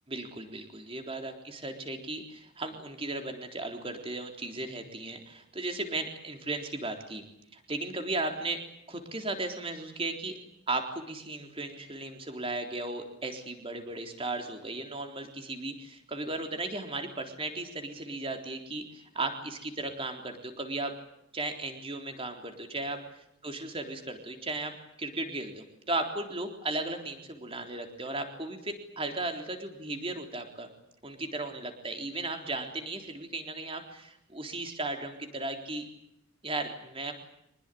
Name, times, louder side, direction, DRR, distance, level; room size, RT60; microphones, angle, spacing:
voice 1, 0.1-7.2 7.5-8.6 8.9-10.4 10.7-20.9 21.3-30.7 31.0-35.8 36.4-37.1, right 2 dB, 25° right, 5 dB, 3.7 m, -36 dB
25.5 x 20.0 x 9.9 m, 0.77 s
head